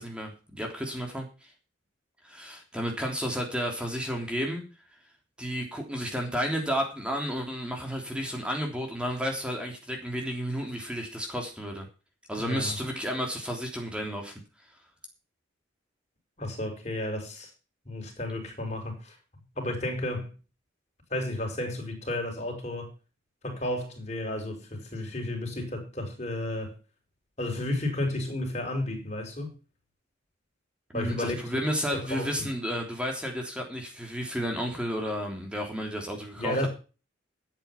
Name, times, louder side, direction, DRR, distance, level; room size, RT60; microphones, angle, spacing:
voice 1, 0.0-1.5 2.2-4.6 5.4-11.9 12.3-14.3 30.9-36.7, equal, 5° right, 3.3 m, -32 dB
voice 2, 12.4-12.8 16.4-17.5 17.9-19.2 19.5-20.3 21.1-22.9 23.4-26.7 27.4-29.5 30.9-31.6 31.9-32.5 36.3-36.7, left 1 dB, 35° left, 5.4 m, -32 dB
12.5 x 9.1 x 5.8 m
head